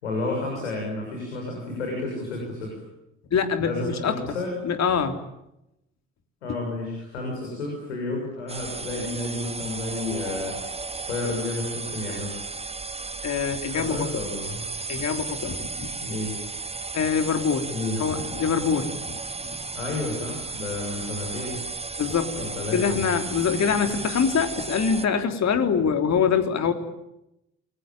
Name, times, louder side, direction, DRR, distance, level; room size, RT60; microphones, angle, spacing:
voice 1, 0.0-2.8 3.6-4.5 6.4-10.5 11.1-12.3 13.7-14.7 16.0-16.4 17.7-18.0 19.7-21.6 22.3-23.1, left 2 dB, 90° left, 0 dB, 6.7 m, -31 dB
voice 2, 3.3-4.2 4.6-5.2 13.2-14.1 14.9-15.9 16.9-17.7 18.0-19.2 19.5-19.6 22.0-22.4 22.7-26.7, left 6 dB, 50° left, 7 dB, 3.6 m, -24 dB
sound 1, 8.5-25.1, right 3 dB, 20° right, 1.2 m, -34 dB
28.0 x 22.0 x 9.2 m, 0.87 s
hypercardioid pair, 50°, 34 cm